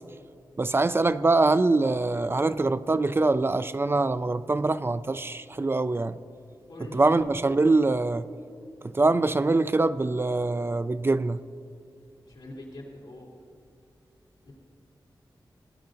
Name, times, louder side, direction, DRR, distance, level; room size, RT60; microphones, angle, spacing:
voice 1, 0.6-6.2 6.8-8.2 8.8-11.4, right 3 dB, 30° right, 13 dB, 0.3 m, -24 dB
voice 2, 6.7-7.2 12.3-13.3 14.4-14.5, left 1 dB, 90° left, -4 dB, 2.5 m, -42 dB
18.5 x 10.0 x 2.6 m, 2.5 s
cardioid pair, 55°, 8 cm